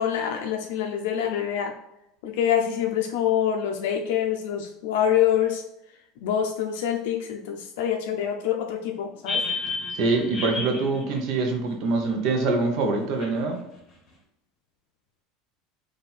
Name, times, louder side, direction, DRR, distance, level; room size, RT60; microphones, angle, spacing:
voice 1, 0.0-1.7 2.2-5.6 6.2-9.4, left 9 dB, 80° left, 2 dB, 0.4 m, -25 dB
sound 1, 9.3-12.3 13.2-13.3, left 3 dB, 30° left, 1.5 m, -31 dB
voice 2, 9.9-13.6, right 3 dB, 45° right, 3 dB, 0.8 m, -24 dB
4.2 x 2.6 x 4.1 m, 0.83 s
cardioid pair, 170°, 0 cm